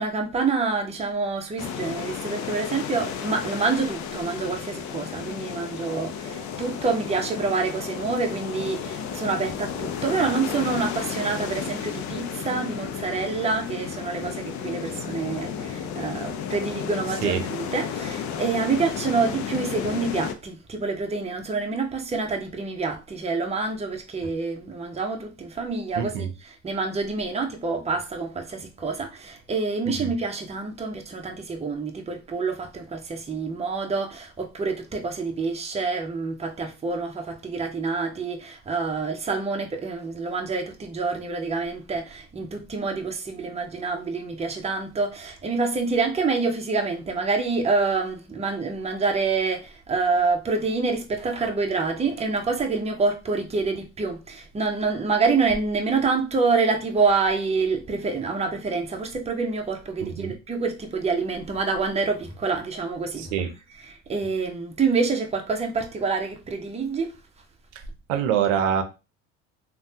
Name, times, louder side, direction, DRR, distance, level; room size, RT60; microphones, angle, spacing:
voice 1, 0.0-67.1, right 4 dB, 20° right, 0.7 m, -27 dB
sound 1, 1.6-20.3, left 7 dB, 50° left, 0.5 m, -33 dB
voice 2, 26.0-26.3 29.9-30.1 60.0-60.3 63.2-63.5 68.1-68.8, right 8 dB, 90° right, 0.6 m, -25 dB
3.2 x 2.3 x 2.7 m
supercardioid pair, 90°, 36 cm